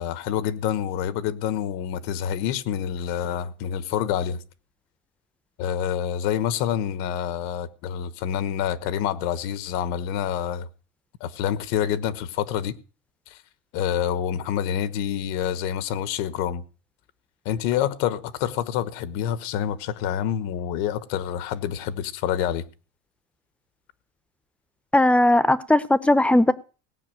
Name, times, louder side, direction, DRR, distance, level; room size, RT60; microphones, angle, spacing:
voice 1, 0.0-4.4 5.6-10.7 11.2-12.7 13.3-13.4 13.7-16.6 17.4-22.7, left 9 dB, 70° left, 1.3 m, -27 dB
voice 2, 24.9-26.5, left 1 dB, 5° left, 0.9 m, -18 dB
17.5 x 6.0 x 9.2 m
supercardioid pair, 130°, 21 cm